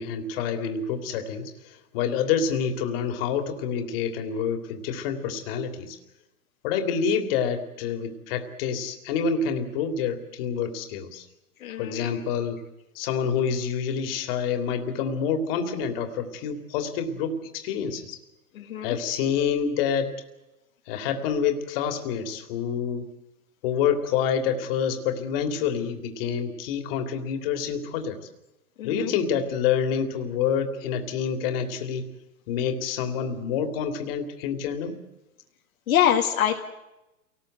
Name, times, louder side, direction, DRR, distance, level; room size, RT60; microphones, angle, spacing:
voice 1, 0.0-6.0 6.6-11.3 11.8-12.6 12.9-18.2 18.8-20.1 20.9-23.1 23.6-28.2 28.8-32.1 32.5-35.0, left 7 dB, 40° left, 6 dB, 2.9 m, -27 dB
voice 2, 11.6-12.1 18.5-19.0 28.8-29.1 35.9-36.7, left 10 dB, 65° left, 1 dB, 2.0 m, -25 dB
28.0 x 19.0 x 7.9 m, 0.98 s
hypercardioid pair, 140°, 45 cm